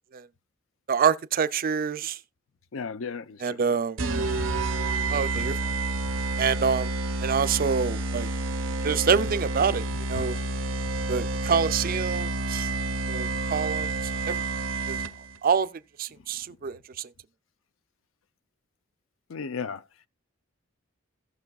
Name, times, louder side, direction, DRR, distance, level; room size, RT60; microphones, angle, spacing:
voice 1, 0.9-2.2 3.4-4.0 5.1-5.7 6.4-6.9 7.2-8.3 8.8-10.4 11.1-12.7 13.1-13.9 14.3-14.4 14.9-15.0 15.4-15.7 16.0-17.1, right 6 dB, 45° right, 0.5 m, -26 dB
voice 2, 2.7-3.4 3.7-3.8 5.3-5.5 5.9-6.0 10.2-10.3 19.3-19.8, left 5 dB, 85° left, 0.6 m, -34 dB
sound 1, 4.0-15.4, right 2 dB, 75° right, 0.8 m, -29 dB
16.5 x 6.0 x 2.3 m
head